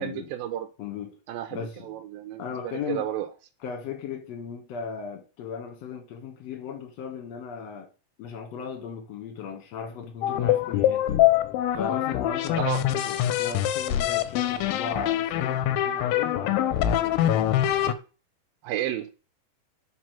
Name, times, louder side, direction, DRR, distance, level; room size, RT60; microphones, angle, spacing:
voice 1, 0.0-0.7 1.3-3.3 12.6-12.8 18.6-19.1, right 12 dB, 85° right, 2.3 m, -32 dB
voice 2, 0.8-1.1 1.5-1.9 2.4-3.1 3.6-7.9 8.2-11.2 11.7-17.5, left 6 dB, 60° left, 2.1 m, -36 dB
sound 1, 10.2-17.9, left 12 dB, 85° left, 2.3 m, -24 dB
4.8 x 4.8 x 5.8 m
omnidirectional pair, 4.2 m